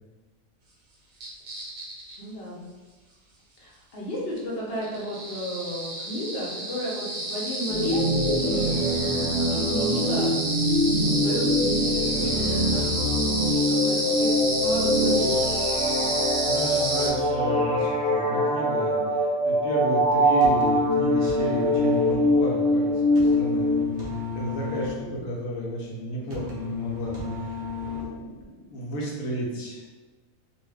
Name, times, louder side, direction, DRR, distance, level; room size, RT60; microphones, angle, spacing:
sound 1, 1.2-2.2 4.4-4.5 4.8-17.1, right 2 dB, 75° right, 1.1 m, -30 dB
voice 1, 2.2-2.6 3.6-8.1 8.4-8.9 9.5-10.4 10.9-11.8 12.1-13.1 13.3-14.3 14.6-15.6, equal, 50° left, -4 dB, 0.9 m, -33 dB
sound 2, 7.7-23.8, equal, 5° left, 0.5 m, -23 dB
voice 2, 16.2-29.8, equal, 80° left, -4 dB, 1.1 m, -33 dB
sound 3, 20.4-28.4, left 5 dB, 55° right, 0.5 m, -34 dB
2.5 x 2.4 x 3.3 m, 1.3 s
omnidirectional pair, 1.4 m